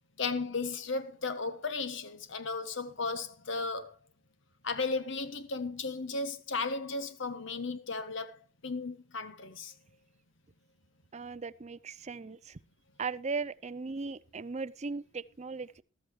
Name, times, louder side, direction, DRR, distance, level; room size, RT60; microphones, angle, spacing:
voice 1, 0.2-3.9 4.6-8.4 8.6-9.7, left 4 dB, 65° left, 1.2 m, -35 dB
voice 2, 11.1-12.6 13.0-15.8, right 4 dB, 35° right, 0.5 m, -38 dB
14.0 x 13.5 x 3.1 m
head